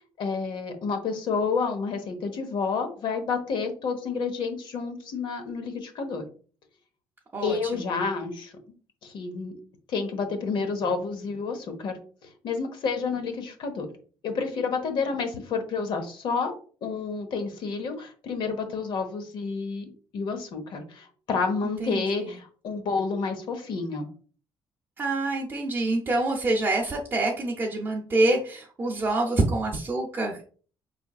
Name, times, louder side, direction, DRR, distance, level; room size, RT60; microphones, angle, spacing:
voice 1, 0.2-6.3 7.4-8.5 9.0-9.5 9.9-12.0 12.4-13.9 14.2-16.5 16.8-24.1, left 4 dB, 60° left, 6 dB, 0.9 m, -29 dB
voice 2, 7.3-7.9 21.8-22.3 25.0-30.4, right 2 dB, 25° right, -2 dB, 0.6 m, -26 dB
4.8 x 3.3 x 2.3 m, 0.41 s
cardioid pair, 150°, 9 cm